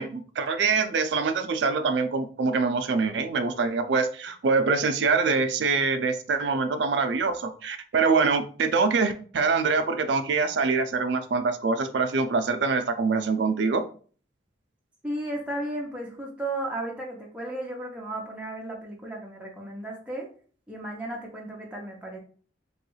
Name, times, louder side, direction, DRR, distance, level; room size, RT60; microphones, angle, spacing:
voice 1, 0.0-13.8, right 4 dB, 70° right, 9 dB, 0.4 m, -24 dB
voice 2, 15.0-20.3 20.7-22.2, right 1 dB, 5° right, -3 dB, 0.5 m, -34 dB
3.0 x 2.3 x 3.0 m, 0.42 s
head